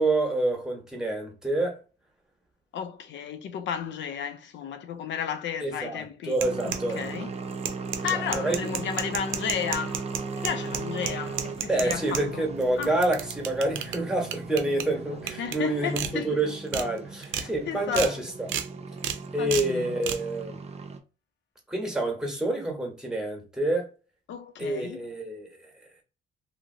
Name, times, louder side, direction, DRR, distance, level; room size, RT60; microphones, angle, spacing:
voice 1, 0.0-1.8 5.6-7.0 8.1-8.6 11.7-18.5 19.3-20.6 21.7-23.9 24.6-25.5, right 2 dB, 5° right, 1.2 m, -28 dB
voice 2, 2.7-7.3 8.0-10.0 10.4-12.5 12.8-13.0 15.1-16.6 17.3-18.2 19.4-20.0 24.3-25.0, left 8 dB, 70° left, 0.4 m, -33 dB
sound 1, 6.3-7.1 7.5-12.2 12.6-14.0 14.3-14.8 15.3-15.6 16.0-16.1 16.5-16.8 17.2-17.5 17.9-18.1 18.5-18.7 19.0-19.2 19.5-19.7 20.0-20.2, right 9 dB, 80° right, 0.6 m, -31 dB
sound 2, 6.4-21.0, right 4 dB, 30° right, 0.6 m, -38 dB
2.8 x 2.8 x 2.7 m
cardioid pair, 90°, 20 cm